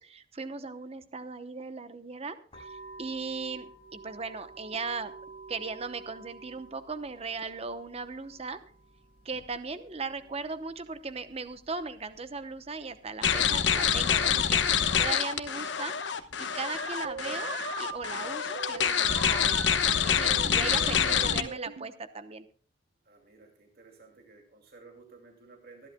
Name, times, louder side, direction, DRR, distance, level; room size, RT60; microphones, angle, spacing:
voice 1, 0.0-5.1 5.5-8.6 9.2-22.5, right 4 dB, 35° right, 11 dB, 0.8 m, -38 dB
sound 1, 2.5-13.1, right 3 dB, 30° left, 6.7 m, -51 dB
sound 2, 13.2-21.4, left 8 dB, 70° left, 1.0 m, -26 dB
sound 3, 16.8-19.8 20.3-21.9, right 5 dB, 70° right, 0.9 m, -40 dB
voice 2, 23.0-25.9, right 4 dB, 55° right, 2 dB, 2.4 m, -54 dB
24.5 x 11.0 x 2.2 m, 0.42 s
head